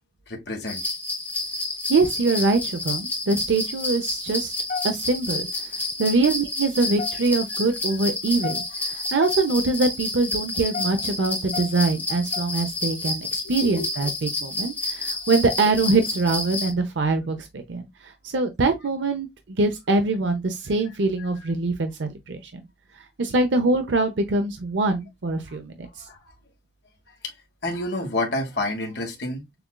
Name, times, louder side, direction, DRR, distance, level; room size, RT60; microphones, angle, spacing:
voice 1, 0.3-0.9 13.6-13.9 25.5-25.6 25.8-26.2 27.2-27.3 27.6-29.4, left 2 dB, 70° left, 1.3 m, -29 dB
sound 1, 0.7-16.7, left 2 dB, 10° left, 0.7 m, -30 dB
voice 2, 1.9-4.5 4.8-5.5 6.0-22.6 23.2-26.1, right 3 dB, 85° right, 0.6 m, -24 dB
sound 2, 4.7-5.4 5.9-6.1 6.7-7.6 8.2-9.4 9.7-9.8 10.4-12.8, left 6 dB, 45° left, 0.4 m, -33 dB
6.7 x 2.4 x 2.2 m
head